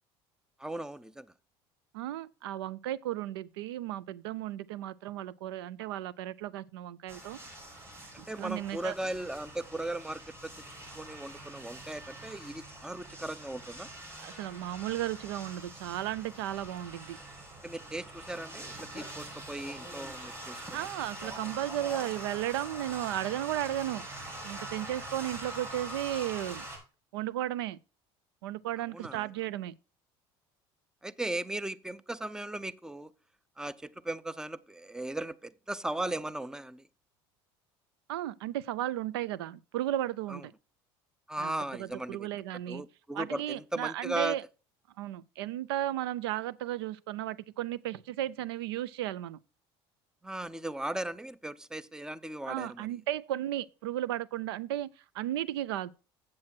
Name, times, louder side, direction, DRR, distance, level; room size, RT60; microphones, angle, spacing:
voice 1, 0.6-1.3 8.1-10.5 11.0-13.9 17.6-20.9 28.9-29.3 31.0-33.1 33.6-36.8 40.3-40.4 41.3-42.3 42.7-44.4 50.2-52.9, right 1 dB, 5° right, 0.5 m, -37 dB
voice 2, 1.9-7.4 8.2-9.1 14.2-17.2 20.7-24.0 24.4-26.6 27.1-27.8 28.4-29.7 38.1-40.5 41.4-42.8 43.1-44.4 45.0-49.4 52.5-54.9 55.1-55.9, right 13 dB, 90° right, 0.4 m, -34 dB
sound 1, 7.1-26.8, right 1 dB, 20° right, 5.0 m, -44 dB
7.5 x 7.5 x 4.4 m
supercardioid pair, 85°, 13 cm